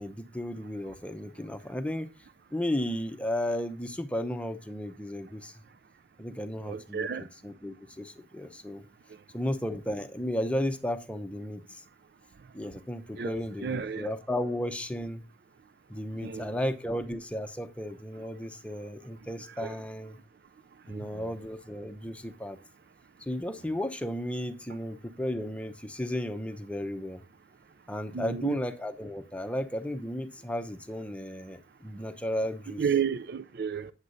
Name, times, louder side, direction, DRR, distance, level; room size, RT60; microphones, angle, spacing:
voice 1, 0.0-2.1 2.5-5.5 6.2-8.8 9.3-11.8 12.5-15.2 15.9-20.2 20.9-22.6 23.2-27.2 27.9-32.8, left 1 dB, 5° left, 0.7 m, -34 dB
voice 2, 6.7-7.2 13.2-13.4 13.6-14.1 16.2-16.5 19.6-19.8 28.1-28.6 32.8-33.9, right 7 dB, 60° right, 0.4 m, -31 dB
8.7 x 8.0 x 2.6 m
head